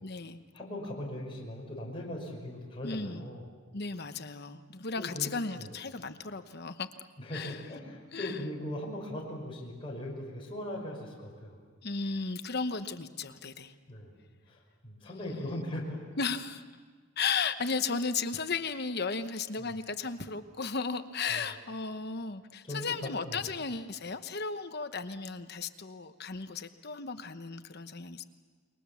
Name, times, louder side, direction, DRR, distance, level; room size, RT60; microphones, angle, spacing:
voice 1, 0.0-0.4 2.8-3.2 3.7-6.9 7.3-7.6 8.1-8.4 11.8-13.7 15.3-15.5 16.2-16.6 17.2-28.2, left 4 dB, 50° left, 9 dB, 1.0 m, -35 dB
voice 2, 0.5-3.4 5.0-5.7 7.2-11.6 13.9-14.2 14.5-16.1 19.6-19.7 21.3-21.5 22.7-23.4, left 1 dB, 25° left, -3 dB, 5.5 m, -39 dB
30.0 x 22.0 x 7.2 m, 1.5 s
head